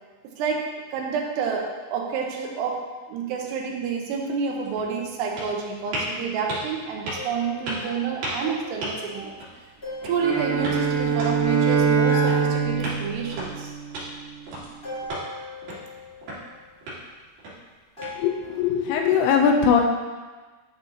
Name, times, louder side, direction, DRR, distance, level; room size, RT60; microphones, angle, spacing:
voice 1, 0.9-2.8 3.1-9.4 10.0-13.7, right 6 dB, 80° right, 1 dB, 2.9 m, -29 dB
sound 1, 4.2-18.6, right 1 dB, 55° right, 3.5 m, -38 dB
sound 2, 7.1-11.7 12.1-13.7 14.8-16.8 18.0-18.4, left 3 dB, 40° left, 0.7 m, -40 dB
Bowed string instrument, 10.2-14.4, right 6 dB, 35° right, 2.3 m, -24 dB
voice 2, 18.2-19.8, left 6 dB, 80° left, 3 dB, 2.5 m, -20 dB
10.0 x 5.9 x 2.8 m, 1.3 s
omnidirectional pair, 4.9 m